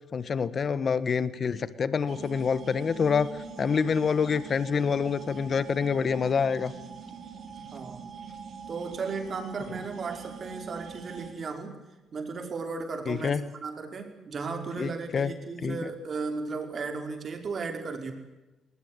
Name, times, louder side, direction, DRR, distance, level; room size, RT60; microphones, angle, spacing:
voice 1, 0.1-3.3 3.6-6.7 13.1-13.4 14.8-15.3 15.6-15.9, left 6 dB, 45° left, 15 dB, 1.5 m, -27 dB
sound 1, 2.1-11.3, right 6 dB, 65° right, 4.7 m, -43 dB
voice 2, 7.5-8.1 8.7-11.8 12.1-18.1, right 4 dB, 45° right, 5 dB, 5.1 m, -35 dB
20.0 x 20.0 x 10.0 m, 1.0 s
cardioid pair, 90°, 0 cm